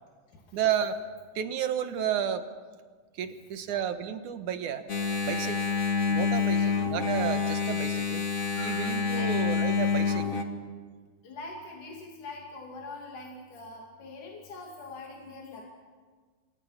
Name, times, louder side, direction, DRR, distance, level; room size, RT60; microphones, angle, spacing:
voice 1, 0.5-1.0 1.4-2.4 3.2-4.9 5.2-5.6 6.1-10.4, right 9 dB, 75° right, 8 dB, 2.7 m, -32 dB
Engine, 4.9-10.4, left 5 dB, 35° left, 1.6 m, -27 dB
voice 2, 9.1-9.4 11.2-15.6, left 3 dB, 75° left, -1 dB, 4.2 m, -43 dB
28.5 x 26.0 x 5.9 m, 1.5 s
omnidirectional pair, 3.6 m